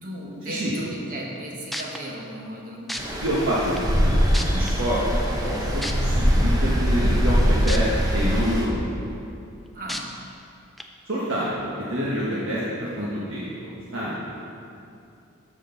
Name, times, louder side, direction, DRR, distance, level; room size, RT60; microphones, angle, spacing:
voice 1, 0.0-3.2 9.7-10.1, right 1 dB, 40° right, -2 dB, 1.5 m, -36 dB
sound 1, 1.7-2.0 2.9-3.0 3.8-3.9 4.3-4.7 5.8-5.9 7.7-7.8 8.3-8.4 9.9-10.0 10.8-10.9, left 1 dB, ahead, 0.4 m, -30 dB
Stream, 3.0-8.7, equal, 15° right, 0.9 m, -22 dB
voice 2, 3.2-5.0 5.4-8.9 11.1-14.2, equal, 65° right, -7 dB, 1.4 m, -27 dB
13.0 x 6.3 x 4.0 m, 2.6 s
head